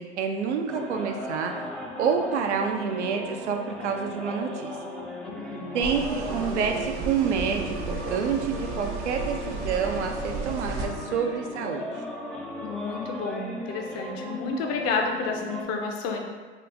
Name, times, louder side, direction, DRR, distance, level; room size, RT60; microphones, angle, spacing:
voice 1, 0.0-1.7 2.0-4.8 5.7-11.9, right 6 dB, 85° right, 4 dB, 0.5 m, -28 dB
sound 1, 0.7-15.6, left 1 dB, ahead, 0.3 m, -37 dB
voice 2, 5.2-5.8 12.6-16.2, left 4 dB, 45° left, 2 dB, 0.6 m, -30 dB
ventilatior far, 5.8-10.8, right 3 dB, 40° right, 0.6 m, -34 dB
2.9 x 2.3 x 3.3 m, 1.4 s
hypercardioid pair, 90°, 34 cm